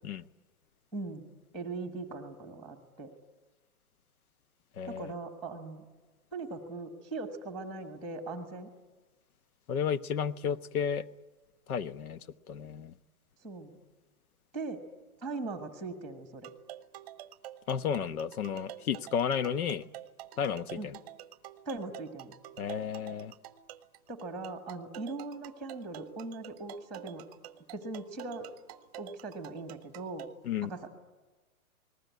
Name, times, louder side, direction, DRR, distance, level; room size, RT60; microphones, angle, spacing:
voice 1, 0.9-1.2 1.5-3.1 4.9-5.8 6.3-8.7 13.4-13.8 14.5-14.8 15.2-16.5 20.7-20.9 21.6-22.3 24.1-27.2 27.7-28.5 29.0-30.3 30.6-30.9, right 3 dB, ahead, 6 dB, 1.4 m, -40 dB
voice 2, 4.8-5.1 9.7-11.1 11.7-12.2 12.5-12.9 17.7-19.8 20.4-20.9 22.6-23.3 30.4-30.7, left 7 dB, 75° left, 13 dB, 1.2 m, -32 dB
sound 1, 16.4-30.3, right 12 dB, 25° right, 0.8 m, -48 dB
29.0 x 20.0 x 9.4 m, 1.3 s
hypercardioid pair, 165°, 44 cm